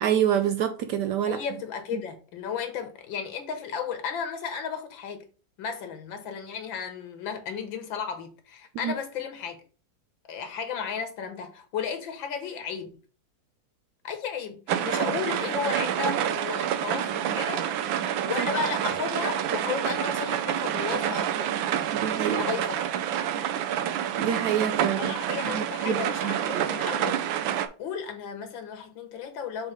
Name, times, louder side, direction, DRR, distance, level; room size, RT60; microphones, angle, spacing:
voice 1, 0.0-1.4 1.9-2.0 8.8-8.9 18.4-18.5 21.9-22.4 24.2-25.1 25.4-26.7, right 9 dB, 70° right, 1.1 m, -27 dB
voice 2, 1.3-5.3 5.6-9.6 10.3-12.9 14.0-17.7 18.3-21.6 22.2-22.8 25.0-27.2 27.8-29.7, left 6 dB, 80° left, 1.9 m, -34 dB
sound 1, 14.7-27.7, right 10 dB, 90° right, 1.4 m, -28 dB
6.4 x 3.5 x 4.8 m
omnidirectional pair, 2.1 m